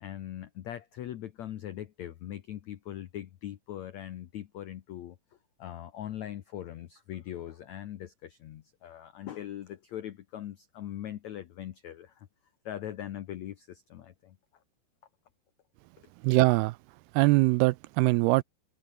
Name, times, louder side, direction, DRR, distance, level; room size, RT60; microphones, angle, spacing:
voice 1, 0.0-5.2 5.6-12.3 12.6-14.4, left 11 dB, 85° left, 1.5 m, -41 dB
voice 2, 16.2-16.8 17.1-18.4, right 22 dB, 85° right, 2.3 m, -22 dB
omnidirectional pair, 4.9 m